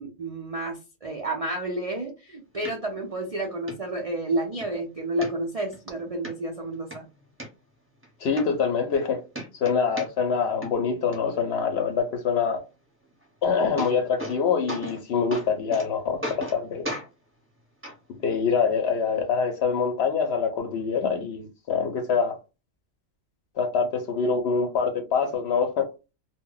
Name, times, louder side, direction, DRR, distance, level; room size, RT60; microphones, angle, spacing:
voice 1, 0.0-7.0, right 1 dB, 70° right, 0.3 m, -30 dB
sound 1, 2.6-2.7 3.2-3.3 3.7-3.8 4.2-4.7 5.2-5.8 6.2-6.3 6.7-7.5 8.0-8.1 8.4-9.0 9.3-10.4 10.6-11.2 13.2-13.3 13.5-14.4 14.7-15.0 15.3-15.9 16.2-16.6 16.8-17.1 17.8-17.9 18.8-18.9, right 1 dB, 15° right, 0.6 m, -35 dB
voice 2, 8.2-9.2 9.6-12.6 13.4-16.8 18.2-22.3 23.6-25.9, left 5 dB, 65° left, 0.7 m, -25 dB
2.2 x 2.1 x 3.7 m
omnidirectional pair, 1.4 m